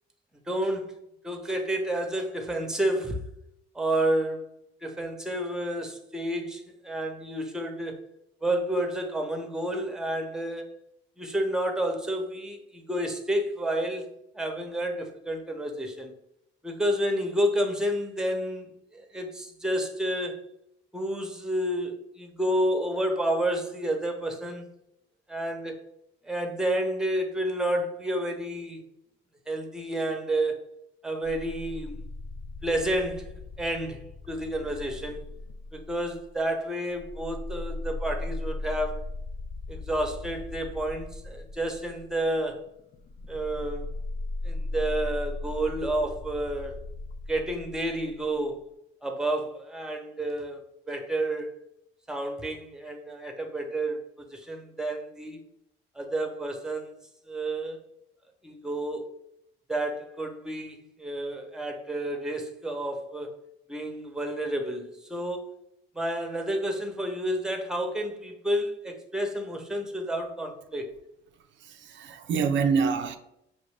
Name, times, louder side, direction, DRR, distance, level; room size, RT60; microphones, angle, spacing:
voice 1, 0.5-0.9 1.2-3.2 3.7-4.5 4.8-8.0 8.4-10.8 11.2-14.1 14.3-16.1 16.6-20.4 20.9-24.6 25.3-25.7 26.2-28.8 29.5-30.7 31.0-32.0 32.6-33.3 33.6-35.2 35.7-39.0 39.7-42.6 43.3-43.9 44.4-46.7 47.3-48.6 49.0-51.5 52.1-55.4 55.9-57.0 57.3-57.8 58.4-59.1 59.7-63.3 63.7-65.5 65.9-70.9, right 1 dB, 5° right, 0.8 m, -30 dB
sound 1, 31.2-36.4 36.9-48.4, left 2 dB, 40° left, 0.4 m, -38 dB
voice 2, 71.7-73.2, right 5 dB, 70° right, 0.4 m, -26 dB
5.6 x 2.6 x 3.2 m
cardioid pair, 90°, 20 cm